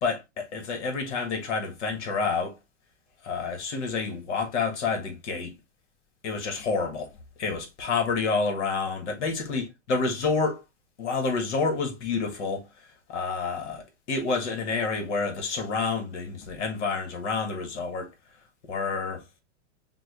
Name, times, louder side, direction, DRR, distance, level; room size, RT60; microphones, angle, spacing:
voice 1, 0.0-2.5 3.2-5.5 6.2-7.1 7.4-10.6 11.0-12.6 13.1-18.1 18.7-19.2, left 4 dB, 70° left, 2.0 m, -28 dB
6.1 x 2.6 x 3.0 m
hypercardioid pair, 125°, 36 cm